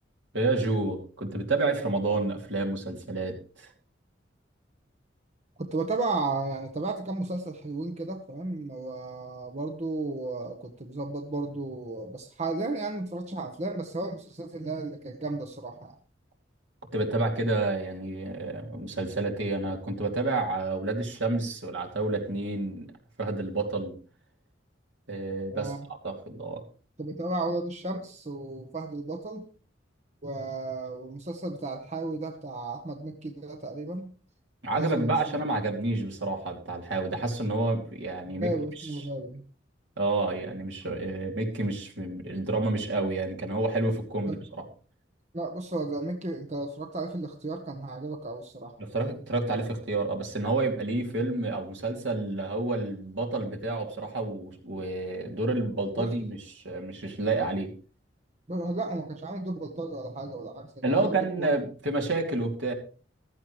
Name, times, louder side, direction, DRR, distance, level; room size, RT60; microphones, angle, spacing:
voice 1, 0.3-3.7 16.9-22.9 23.2-24.0 25.1-25.7 26.0-26.6 34.6-38.5 40.0-44.6 48.8-57.7 60.8-62.7, right 2 dB, 75° right, 1 dB, 2.8 m, -29 dB
voice 2, 5.6-15.9 25.5-25.9 27.0-29.5 30.2-34.1 34.7-35.2 38.3-39.4 44.2-44.3 45.3-48.8 56.0-56.1 58.5-61.5, right 2 dB, 40° right, 4 dB, 1.2 m, -34 dB
15.0 x 13.5 x 3.3 m, 0.39 s
head